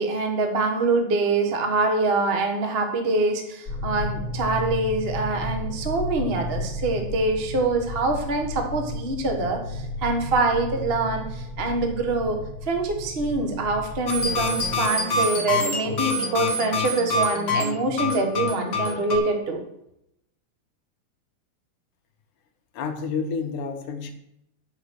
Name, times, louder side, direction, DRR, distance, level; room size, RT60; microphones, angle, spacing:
voice 1, 0.0-12.4 12.7-19.6, right 3 dB, 75° right, 4 dB, 0.5 m, -25 dB
sound 1, 3.7-14.8, left 1 dB, 25° left, 2.7 m, -33 dB
sound 2, 14.1-19.2, left 2 dB, 45° left, 2.1 m, -26 dB
voice 2, 22.7-24.1, left 5 dB, 75° left, 5 dB, 2.3 m, -29 dB
9.8 x 5.9 x 6.3 m, 0.78 s
omnidirectional pair, 3.7 m